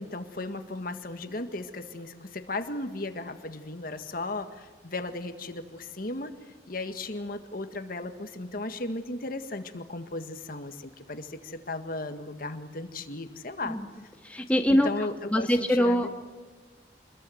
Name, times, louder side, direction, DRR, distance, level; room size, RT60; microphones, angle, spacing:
voice 1, 0.0-6.3 6.7-13.8 14.7-16.1, left 2 dB, 50° left, 7 dB, 1.7 m, -36 dB
voice 2, 14.2-16.1, equal, 10° left, 3 dB, 1.9 m, -24 dB
27.5 x 22.0 x 7.9 m, 1.4 s
head